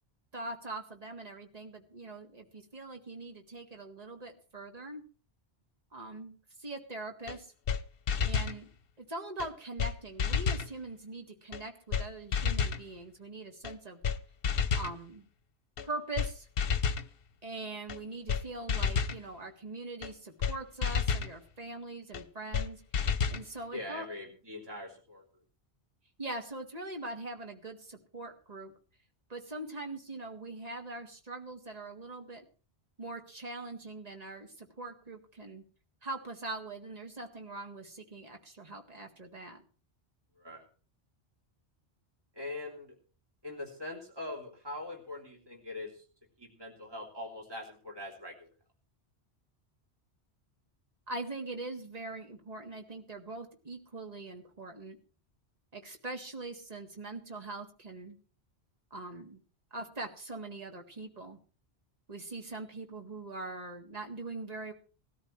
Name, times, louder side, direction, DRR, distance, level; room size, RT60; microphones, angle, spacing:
voice 1, 0.3-5.0 5.9-7.5 8.2-8.7 9.0-14.0 14.7-15.3 15.8-16.5 17.4-22.8 23.3-24.1 26.2-28.7 29.3-32.4 33.0-35.6 36.0-39.6 51.1-55.0 55.7-58.2 58.9-59.4 59.7-61.4 62.1-64.7, right 2 dB, 35° right, 4 dB, 1.9 m, -42 dB
sound 1, 7.3-7.4 7.7-7.8 8.1-8.6 9.4-9.5 9.8-9.9 10.2-10.7 11.5-11.6 11.9-12.1 12.3-12.8 13.6-13.7 14.0-14.2 14.4-14.9 15.8-15.9 16.2-16.3 16.6-17.1 17.9-18.0 18.3-18.4 18.7-19.2 20.0-20.1 20.4-20.6 20.8-21.3 22.1-22.2 22.5-22.7 22.9-23.4, left 6 dB, 60° left, 1.0 m, -30 dB
voice 2, 23.7-25.2 40.4-40.6 42.3-42.9 43.4-46.0 46.4-48.5, left 2 dB, 20° right, -1 dB, 3.3 m, -42 dB
19.5 x 13.5 x 3.2 m, 0.38 s
omnidirectional pair, 1.1 m